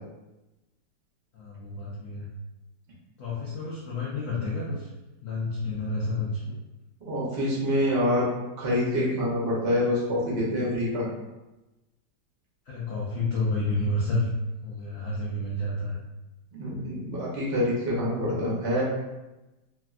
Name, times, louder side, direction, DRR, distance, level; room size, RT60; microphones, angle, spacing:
voice 1, 1.3-2.3 3.2-4.9 5.2-6.6 12.7-14.3 14.6-16.0, left 2 dB, 80° left, -7 dB, 0.7 m, -30 dB
voice 2, 7.0-8.3 8.6-11.1 16.5-18.8, left 1 dB, 60° right, -5 dB, 0.6 m, -26 dB
3.3 x 2.4 x 2.3 m, 1.0 s
omnidirectional pair, 2.1 m